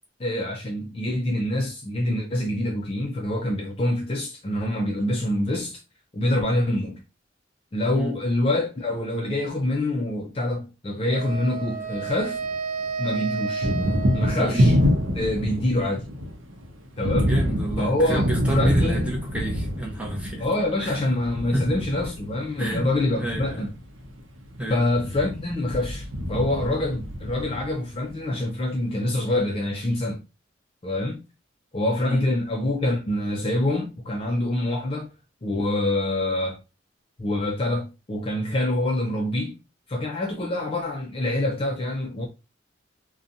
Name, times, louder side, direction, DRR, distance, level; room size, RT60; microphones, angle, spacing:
voice 1, 0.2-5.8 6.1-7.0 7.7-12.4 13.0-13.7 14.1-14.8 15.1-16.1 17.0-17.3 17.8-19.1 20.4-23.7 24.7-30.2 30.8-31.2 31.7-35.1 35.4-36.6 37.2-39.6 39.9-42.3, left 1 dB, 30° left, 0.4 m, -26 dB
Wind instrument woodwind instrument, 11.1-15.2, right 5 dB, 45° right, 0.5 m, -32 dB
Thunder, 11.3-12.6 12.8-28.1, equal, 85° right, 0.6 m, -26 dB
voice 2, 17.0-20.4 20.8-21.0 21.5-21.6 22.6-22.9 23.2-23.7 24.6-24.8 32.1-32.2, right 1 dB, 5° right, 0.7 m, -29 dB
2.6 x 2.2 x 2.6 m
head